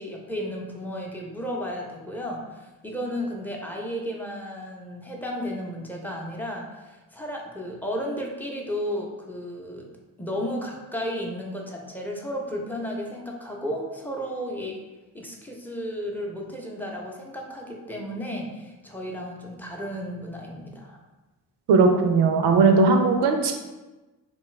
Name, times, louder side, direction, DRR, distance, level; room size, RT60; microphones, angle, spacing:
voice 1, 0.0-9.9 10.2-14.8 15.1-21.0, equal, 5° left, -1 dB, 0.7 m, -33 dB
voice 2, 21.7-23.5, right 4 dB, 75° right, 5 dB, 0.6 m, -18 dB
3.0 x 2.3 x 3.2 m, 1.1 s
supercardioid pair, 55°, 42 cm